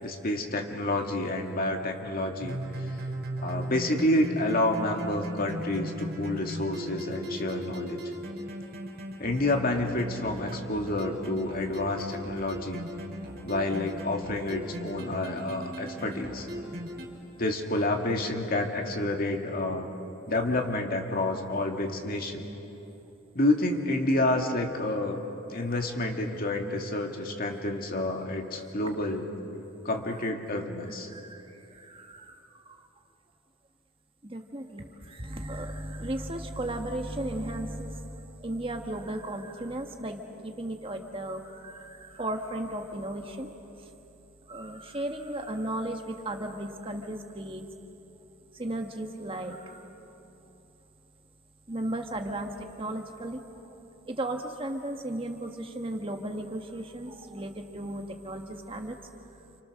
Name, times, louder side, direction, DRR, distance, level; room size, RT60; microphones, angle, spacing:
voice 1, 0.0-2.9 3.4-8.0 9.2-12.8 13.4-16.5 17.4-19.9 20.3-22.5 23.3-25.2 25.5-29.2 29.8-31.1, left 1 dB, 45° left, 3 dB, 2.2 m, -29 dB
sound 1, 2.4-17.1, right 1 dB, 50° right, 4.8 m, -38 dB
voice 2, 31.1-32.8 34.2-43.5 43.8-43.9 44.5-47.6 48.5-49.9 51.7-53.4 54.1-59.0, right 1 dB, 25° right, 4 dB, 1.5 m, -35 dB
29.5 x 28.5 x 6.6 m, 2.9 s
head